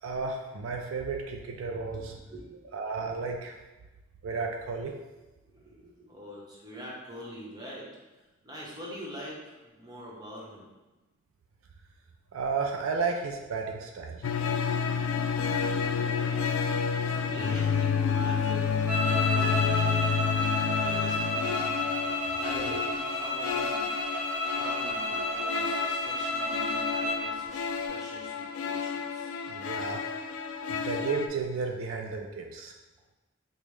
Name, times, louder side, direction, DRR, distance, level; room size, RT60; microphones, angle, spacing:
voice 1, 0.0-2.2 2.7-3.5 4.2-4.9 12.3-14.2 18.5-18.6 22.5-22.8 29.5-30.0 30.7-32.7, right 4 dB, 75° right, 2 dB, 0.4 m, -33 dB
voice 2, 1.7-2.8 5.5-7.9 8.4-10.6 15.9-16.5 17.1-20.2 20.8-21.7 22.4-23.9 24.5-29.3 30.6-30.7, equal, 20° right, -5 dB, 0.8 m, -44 dB
sound 1, 14.2-31.3, left 6 dB, 80° left, 0.3 m, -30 dB
sound 2, 18.9-27.3, left 1 dB, 45° right, 0.9 m, -31 dB
5.2 x 2.0 x 3.2 m, 1.1 s
head